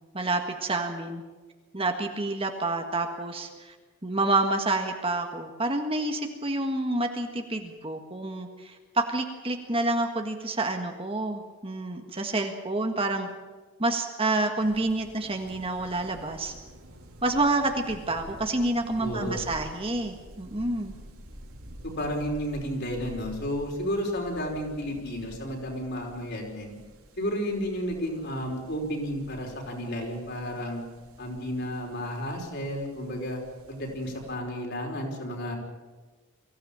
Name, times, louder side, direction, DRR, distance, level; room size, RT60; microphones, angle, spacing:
voice 1, 0.1-1.2 1.7-3.7 4.0-13.3 13.8-16.5 17.2-20.9, right 2 dB, 25° right, 4 dB, 1.7 m, -28 dB
sound 1, 14.6-34.3, equal, 75° right, 4.2 m, -49 dB
voice 2, 19.0-19.4 21.8-26.7 27.2-30.8 31.2-33.4 33.7-35.5, equal, 50° left, 1 dB, 5.2 m, -32 dB
23.5 x 16.0 x 8.8 m, 1.3 s
head